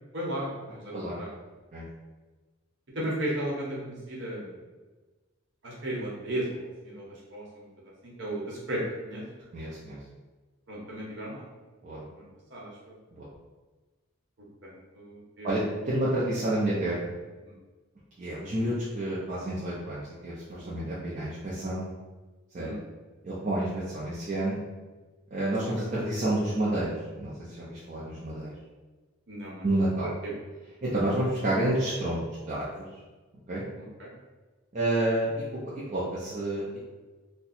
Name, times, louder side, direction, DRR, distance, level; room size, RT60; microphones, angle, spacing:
voice 1, 0.1-1.3 2.9-4.6 5.6-7.7 8.0-9.2 10.7-11.4 12.1-12.9 14.6-15.9 17.4-17.6 22.6-22.8 29.3-29.7 30.2-30.3 33.8-34.1, right 1 dB, 60° right, -5 dB, 1.0 m, -35 dB
voice 2, 9.5-10.0 11.8-12.0 13.1-13.3 15.4-17.0 18.2-21.8 22.5-22.7 23.2-24.6 25.3-27.3 27.6-28.5 29.6-30.1 30.8-32.9 33.5-33.6 34.7-35.3 35.9-36.8, right 1 dB, 40° right, -8 dB, 0.6 m, -29 dB
2.7 x 2.2 x 4.1 m, 1.3 s
head